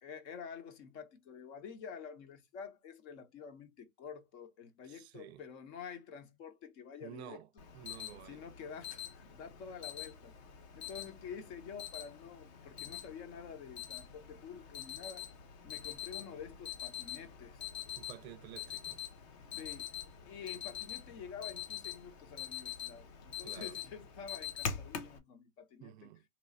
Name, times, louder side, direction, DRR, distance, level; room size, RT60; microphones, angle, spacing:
voice 1, 0.0-7.4 8.2-10.3 10.7-15.3 15.6-17.6 19.6-26.1, left 6 dB, 50° left, 1.0 m, -49 dB
voice 2, 4.8-5.4 7.0-7.5 7.7-8.5 18.0-19.0 23.4-23.8 25.8-26.2, right 12 dB, 50° right, 0.5 m, -51 dB
Alarm, 7.6-25.2, left 9 dB, 25° left, 0.3 m, -45 dB
3.0 x 2.0 x 4.0 m
hypercardioid pair, 130°, 42 cm